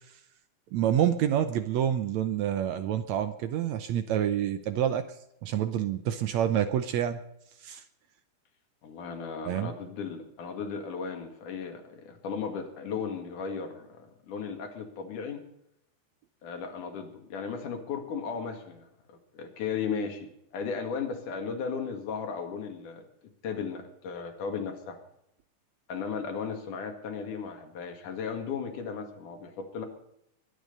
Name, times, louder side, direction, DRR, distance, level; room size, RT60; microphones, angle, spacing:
voice 1, 0.7-5.1 5.4-7.2 7.6-7.8 9.5-9.7, right 10 dB, 70° right, 11 dB, 1.8 m, -27 dB
voice 2, 8.8-15.4 16.4-23.0 23.4-25.0 25.9-29.9, left 6 dB, 70° left, 4 dB, 3.6 m, -36 dB
21.5 x 10.0 x 5.4 m, 0.78 s
omnidirectional pair, 3.7 m